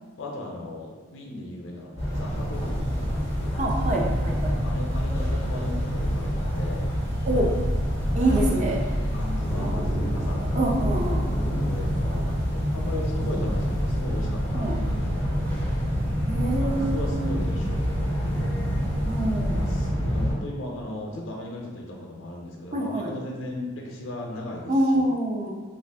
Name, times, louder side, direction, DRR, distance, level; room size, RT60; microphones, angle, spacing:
voice 1, 0.2-3.6 4.6-6.9 7.9-8.5 9.1-10.9 11.6-15.8 16.6-18.6 19.5-25.1, left 1 dB, 85° left, -1 dB, 0.6 m, -37 dB
sound 1, 2.0-20.3, equal, 70° right, 1.4 m, -26 dB
sound 2, 2.5-19.9, equal, 10° left, 0.5 m, -42 dB
voice 2, 3.6-4.5 7.3-7.5 8.1-8.8 10.5-11.2 13.2-13.4 14.5-14.7 16.3-17.2 19.0-19.6 22.7-23.1 24.7-25.5, right 1 dB, 35° right, -2 dB, 0.6 m, -26 dB
3.2 x 2.5 x 3.4 m, 1.4 s
head